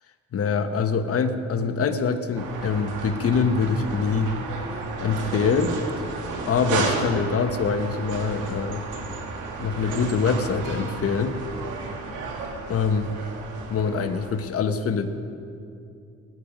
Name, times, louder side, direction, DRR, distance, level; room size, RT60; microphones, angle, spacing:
voice 1, 0.3-4.3 5.0-5.7 6.5-8.8 9.6-11.4 12.7-13.1 13.7-15.1, left 5 dB, 50° left, 8 dB, 1.1 m, -24 dB
sound 1, 2.4-14.4, right 3 dB, 85° right, 2.1 m, -33 dB
20.0 x 8.9 x 5.1 m, 2.5 s
cardioid pair, 90°, 30 cm